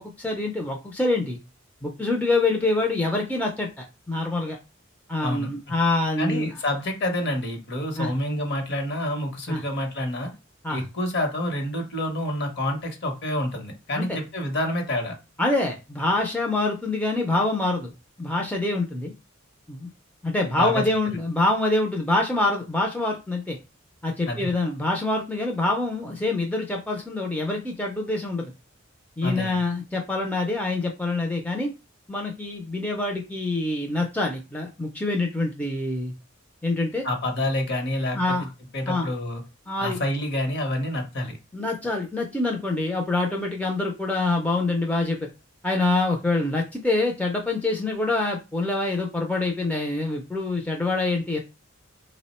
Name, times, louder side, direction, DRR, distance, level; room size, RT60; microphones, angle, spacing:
voice 1, 0.0-1.4 1.8-4.6 5.1-6.5 8.0-8.1 9.5-9.6 10.6-10.9 13.9-14.2 15.4-17.9 18.2-19.1 19.7-19.9 20.2-23.6 24.0-28.4 29.2-31.7 32.1-36.1 36.6-37.1 38.1-38.5 38.9-39.1 39.7-40.0 41.5-45.3 45.6-51.4, left 2 dB, 5° left, 0 dB, 0.4 m, -25 dB
voice 2, 6.2-10.3 10.7-15.1 20.6-20.8 24.3-24.5 29.2-29.6 37.0-38.4 38.7-39.4 39.8-41.4, left 1 dB, 55° left, 4 dB, 0.8 m, -28 dB
3.4 x 2.0 x 4.1 m, 0.28 s
head